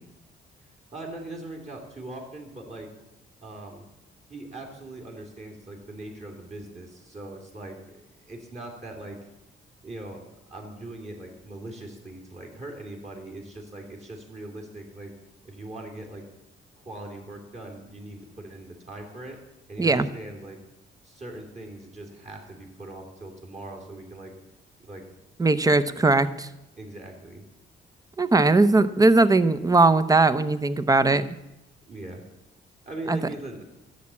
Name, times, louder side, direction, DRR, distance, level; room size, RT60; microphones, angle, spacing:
voice 1, 0.9-2.9 3.4-3.8 4.3-9.2 9.8-10.2 10.5-15.1 15.4-16.2 16.8-19.4 19.7-20.6 21.0-24.3 24.8-25.1 26.8-27.4 31.9-32.2 32.8-33.6, right 2 dB, 35° right, 0 dB, 3.1 m, -40 dB
voice 2, 25.4-26.5 28.2-31.2 33.1-33.2, right 3 dB, 20° right, 13 dB, 0.8 m, -19 dB
11.5 x 7.6 x 8.5 m, 0.93 s
cardioid pair, 90°, 20 cm